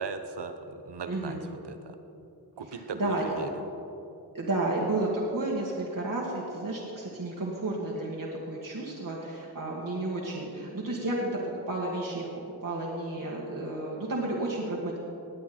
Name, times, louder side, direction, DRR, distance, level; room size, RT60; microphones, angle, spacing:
voice 1, 0.0-1.4 1.6-2.0 2.6-3.5, right 4 dB, 85° right, 8 dB, 1.0 m, -37 dB
voice 2, 1.1-1.4 2.7-3.2 4.3-15.0, right 2 dB, 55° right, -4 dB, 1.9 m, -32 dB
19.5 x 8.4 x 4.4 m, 2.8 s
cardioid pair, 40°, 40 cm